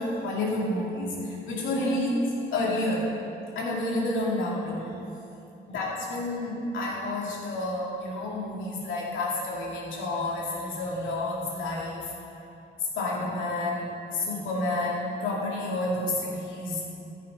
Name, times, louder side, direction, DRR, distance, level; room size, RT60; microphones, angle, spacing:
voice 1, 0.0-2.2 2.5-3.1 3.6-4.9 5.7-12.1 13.0-16.8, left 2 dB, 85° left, -3 dB, 2.5 m, -30 dB
13.5 x 6.2 x 5.4 m, 2.7 s
cardioid pair, 90°, 20 cm